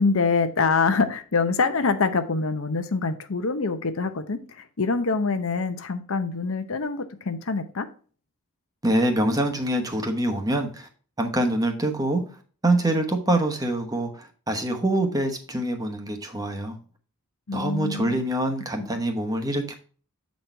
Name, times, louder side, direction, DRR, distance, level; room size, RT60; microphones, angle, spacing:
voice 1, 0.0-7.9 17.5-18.2, left 4 dB, 70° left, 0.7 m, -25 dB
voice 2, 8.8-10.9 11.2-12.2 12.6-16.8 17.5-19.8, right 1 dB, 15° right, 0.9 m, -25 dB
7.6 x 4.2 x 4.5 m
head